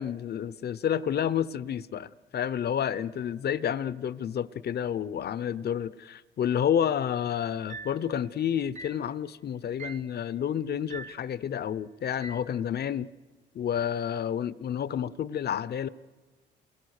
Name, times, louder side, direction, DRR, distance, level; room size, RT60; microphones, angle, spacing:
voice 1, 0.0-13.1 13.5-15.9, left 9 dB, 55° left, 0.8 m, -30 dB
sound 1, 7.7-8.1 8.7-9.1 9.8-10.1 10.9-11.3 12.2-12.5, right 4 dB, 40° right, 0.8 m, -42 dB
29.0 x 22.0 x 6.5 m
cardioid pair, 90°, 20 cm